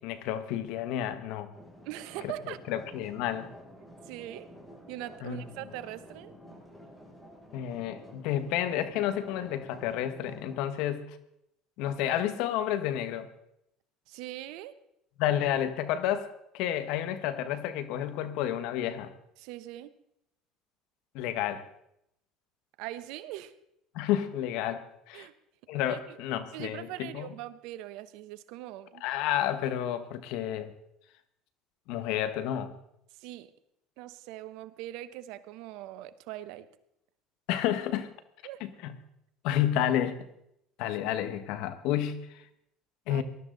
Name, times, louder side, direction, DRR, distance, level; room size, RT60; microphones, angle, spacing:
voice 1, 0.0-1.5 2.2-3.5 5.2-5.4 7.5-11.0 11.8-13.3 15.2-19.1 21.1-21.6 23.9-25.3 25.7-27.3 29.0-30.7 31.9-32.7 37.5-38.1 38.6-39.0 39.4-40.2 40.8-42.3 43.1-43.2, left 11 dB, 70° left, 11 dB, 1.4 m, -30 dB
sound 1, 1.5-10.6, equal, 10° left, 6.5 m, -51 dB
voice 2, 1.8-2.6 4.1-4.5 4.9-6.3 14.1-14.7 19.4-19.9 22.8-23.5 25.1-25.3 25.9-26.2 26.5-29.0 33.2-33.5 34.0-36.7 38.4-38.6 40.9-41.0 43.1-43.2, right 14 dB, 70° right, 15 dB, 0.9 m, -41 dB
19.5 x 12.5 x 4.0 m, 0.78 s
supercardioid pair, 90°, 0 cm